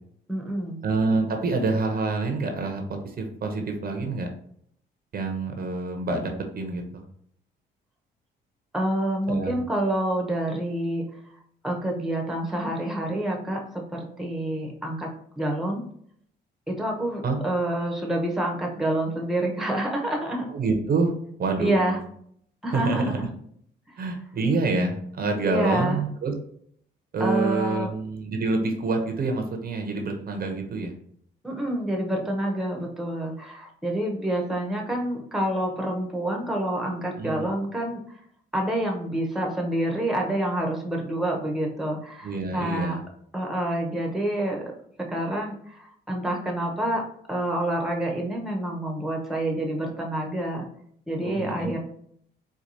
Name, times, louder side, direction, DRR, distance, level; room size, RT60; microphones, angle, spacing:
voice 1, 0.3-0.8 8.7-11.1 11.6-15.8 16.7-20.5 21.6-22.0 22.6-23.3 25.4-26.0 27.2-27.9 31.4-38.2 38.5-43.0 43.3-44.7 45.0-50.7 51.1-51.8, right 1 dB, ahead, 1 dB, 0.8 m, -28 dB
voice 2, 0.8-4.3 5.1-7.0 9.3-9.6 17.2-17.4 20.5-21.1 21.4-21.8 22.7-23.2 24.0-26.3 27.1-30.9 37.2-37.5 42.2-43.0 51.2-51.7, right 3 dB, 50° right, 4 dB, 0.7 m, -27 dB
4.5 x 2.3 x 2.6 m, 0.65 s
cardioid pair, 90°, 20 cm